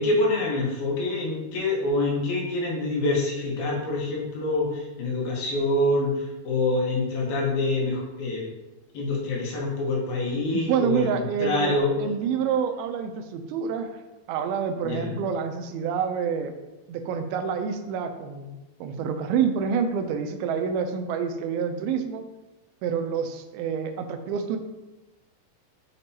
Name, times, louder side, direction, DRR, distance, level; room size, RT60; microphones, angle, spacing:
voice 1, 0.0-8.4 8.9-11.9 14.8-15.1, left 2 dB, 75° left, -3 dB, 3.0 m, -26 dB
voice 2, 10.5-14.0 14.3-16.5 16.9-22.3 22.8-24.6, right 7 dB, 80° right, 6 dB, 2.3 m, -27 dB
6.8 x 5.1 x 2.7 m, 1.1 s
omnidirectional pair, 4.5 m